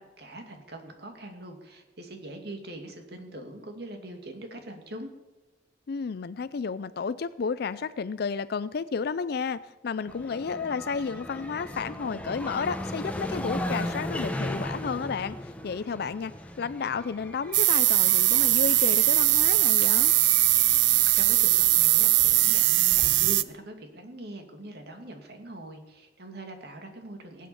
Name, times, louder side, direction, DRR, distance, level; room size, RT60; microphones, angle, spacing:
voice 1, 0.0-5.1 20.8-20.9 21.2-27.5, right 1 dB, 65° right, 4 dB, 2.5 m, -42 dB
voice 2, 5.9-16.3 16.6-20.1, left 5 dB, 60° left, 14 dB, 0.4 m, -32 dB
sound 1, 10.1-21.1, left 1 dB, 10° left, 1.2 m, -37 dB
sound 2, 17.5-23.4, right 16 dB, 90° right, 0.5 m, -21 dB
19.0 x 8.6 x 7.0 m, 1.1 s
head